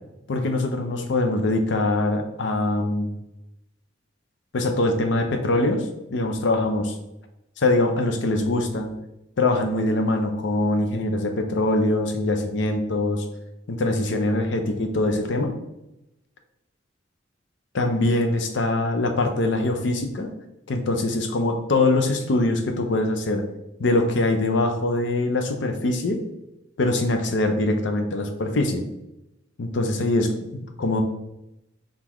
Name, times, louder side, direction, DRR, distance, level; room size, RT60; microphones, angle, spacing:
voice 1, 0.3-3.2 4.5-5.9 6.1-7.0 7.6-8.9 9.4-13.2 13.7-15.6 17.7-20.3 20.7-23.4 23.8-26.2 26.8-28.9 29.6-31.0, left 2 dB, 70° left, 5 dB, 0.5 m, -23 dB
3.8 x 3.6 x 3.0 m, 0.90 s
head